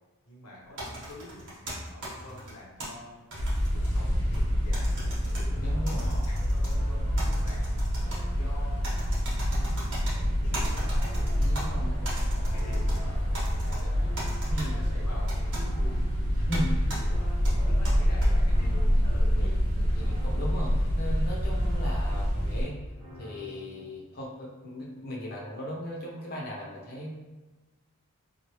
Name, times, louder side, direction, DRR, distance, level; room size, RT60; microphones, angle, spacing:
voice 1, 0.2-3.2 3.6-7.7 8.3-9.2 9.8-11.2 11.6-14.2 14.6-16.0 16.5-19.9, left 1 dB, 85° left, -4 dB, 1.0 m, -47 dB
sound 1, 0.8-2.9 3.3-4.4 4.7-5.4 5.9-6.7 7.2-8.2 8.8-10.1 10.5-11.6 12.0-13.0 13.3-13.8 14.2-14.7 15.3-15.6 16.5-16.6 16.9-17.0 17.4-18.3, right 1 dB, 55° right, 1.2 m, -38 dB
sound 2, 3.4-22.6, equal, 75° right, 1.3 m, -27 dB
voice 2, 5.5-6.2 11.4-12.0 13.8-13.9 14.5-15.0 16.5-16.8 19.4-19.6 19.9-22.8 23.1-27.1, equal, 45° left, -5 dB, 0.8 m, -37 dB
sound 3, 6.7-23.8, equal, 15° right, 1.1 m, -49 dB
3.1 x 2.4 x 3.0 m, 1.2 s
head